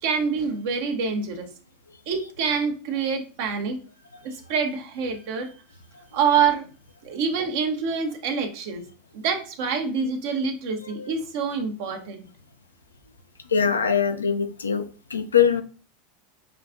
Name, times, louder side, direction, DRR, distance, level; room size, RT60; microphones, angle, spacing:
voice 1, 0.0-1.5 2.1-3.8 4.2-5.5 6.1-6.7 7.0-8.8 9.1-12.3, right 6 dB, 60° right, 5 dB, 0.8 m, -26 dB
voice 2, 10.8-11.1 13.5-14.9 15.1-15.6, left 7 dB, 85° left, 8 dB, 0.4 m, -22 dB
5.5 x 2.4 x 2.4 m, 0.37 s
figure-of-eight pair, 85°, 0 cm